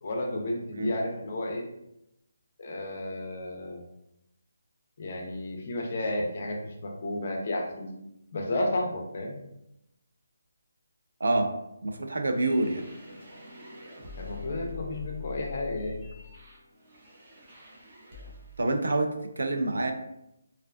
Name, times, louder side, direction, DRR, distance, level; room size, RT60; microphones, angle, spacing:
voice 1, 0.0-1.6 2.6-3.8 5.0-7.9 8.3-9.4 14.2-16.0, left 1 dB, 35° left, 1 dB, 0.4 m, -32 dB
voice 2, 11.2-11.5 11.8-12.8 18.6-19.9, right 2 dB, 85° right, 5 dB, 0.4 m, -27 dB
sound 1, 12.3-18.7, left 5 dB, 20° right, 0.5 m, -44 dB
2.4 x 2.2 x 2.3 m, 0.84 s
hypercardioid pair, 175°, 0 cm